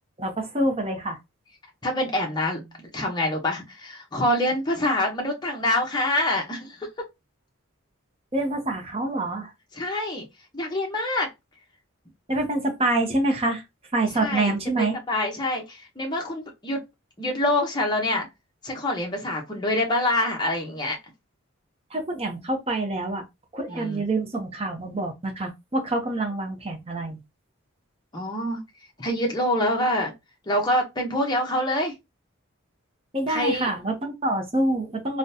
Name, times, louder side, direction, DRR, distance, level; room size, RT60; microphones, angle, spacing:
voice 1, 0.2-1.2 8.3-9.5 12.3-13.6 13.9-15.0 21.9-23.2 23.5-27.2 33.1-35.2, right 2 dB, 30° right, 0.7 m, -26 dB
voice 2, 1.8-6.8 9.7-10.2 10.5-11.3 14.2-16.8 17.2-18.3 18.6-21.0 23.7-24.0 28.1-28.6 29.0-30.1 30.5-31.9 33.3-33.7, left 1 dB, 20° left, 0.8 m, -26 dB
3.7 x 2.2 x 2.7 m
head